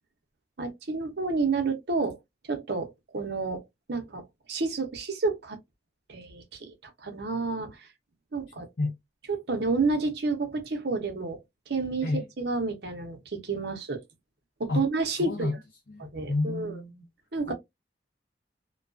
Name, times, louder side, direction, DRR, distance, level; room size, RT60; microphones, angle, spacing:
voice 1, 0.6-2.2 2.5-3.6 3.9-5.6 6.1-7.9 8.3-8.7 9.3-11.4 11.7-14.0 14.6-15.5 16.0-16.8 17.3-17.5, right 3 dB, 70° right, 0.7 m, -30 dB
voice 2, 15.1-15.6 15.9-17.1 17.5-17.6, left 2 dB, 70° left, 0.6 m, -30 dB
2.3 x 2.2 x 2.3 m
head